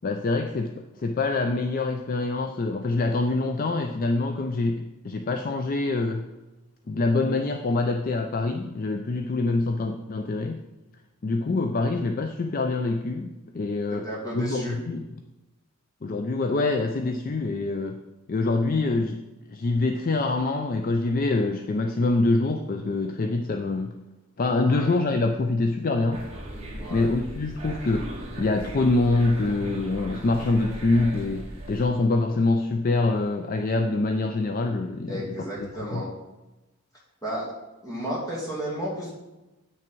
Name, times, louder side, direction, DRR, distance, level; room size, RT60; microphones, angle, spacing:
voice 1, 0.0-6.2 6.9-10.6 11.2-14.0 14.3-15.0 16.0-18.0 18.3-19.2 19.5-23.9 24.4-26.3 26.9-28.1 28.4-36.0, left 2 dB, 40° left, 6 dB, 0.4 m, -25 dB
voice 2, 13.9-14.8 24.6-25.0 26.8-27.1 35.1-36.1 37.2-37.5 37.8-39.1, equal, 15° left, -6 dB, 2.4 m, -33 dB
sound 1, 26.1-31.8, right 1 dB, 30° right, 1.4 m, -38 dB
8.4 x 6.1 x 4.5 m, 1.0 s
head